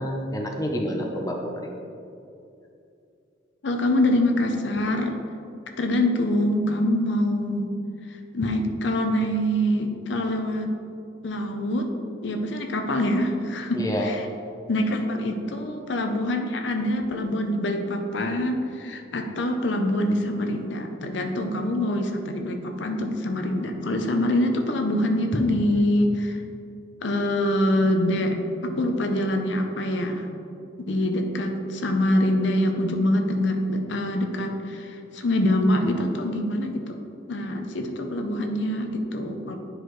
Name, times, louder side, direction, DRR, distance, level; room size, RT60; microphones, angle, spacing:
voice 1, 0.0-1.7 13.7-14.1, equal, 20° left, 1 dB, 0.6 m, -28 dB
voice 2, 3.6-5.2 5.8-7.7 8.1-10.7 11.2-11.9 12.2-14.2 14.7-26.4 27.0-30.3 30.8-37.0 37.3-39.6, left 1 dB, 70° left, 4 dB, 0.6 m, -25 dB
10.0 x 4.8 x 3.1 m, 2.6 s
head